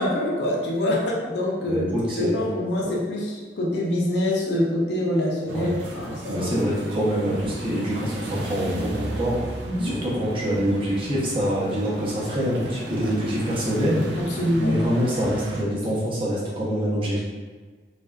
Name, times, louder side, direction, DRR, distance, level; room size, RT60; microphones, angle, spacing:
voice 1, 0.0-1.8 2.2-6.5 9.6-10.0 14.2-14.8, left 1 dB, 65° left, -3 dB, 0.5 m, -25 dB
voice 2, 1.6-2.3 2.8-3.0 5.5-5.7 6.3-9.4 9.8-14.0 14.6-17.2, equal, 30° right, -6 dB, 0.6 m, -25 dB
sound 1, 5.5-15.6, right 1 dB, 70° right, 0.3 m, -36 dB
2.5 x 2.3 x 2.2 m, 1.4 s
head